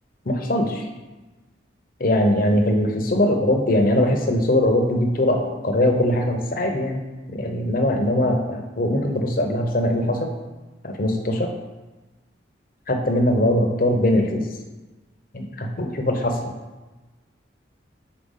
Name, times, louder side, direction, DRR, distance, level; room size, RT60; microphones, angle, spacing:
voice 1, 0.3-0.8 2.0-7.0 7.3-10.3 10.8-11.5 12.9-14.5 15.3-16.5, left 1 dB, 50° left, 3 dB, 0.8 m, -21 dB
5.0 x 4.4 x 5.6 m, 1.2 s
head